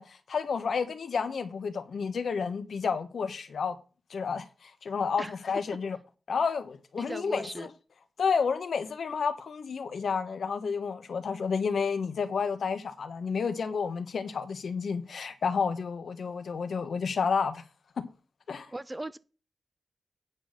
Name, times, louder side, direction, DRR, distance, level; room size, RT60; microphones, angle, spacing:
voice 1, 0.0-3.8 4.1-6.0 6.3-7.7 8.2-17.6 18.0-18.1 18.5-18.7, left 5 dB, 75° left, 1.3 m, -30 dB
voice 2, 7.0-7.7 18.7-19.2, right 1 dB, 15° right, 0.6 m, -38 dB
9.0 x 6.0 x 6.6 m
wide cardioid pair, 125°, 0 cm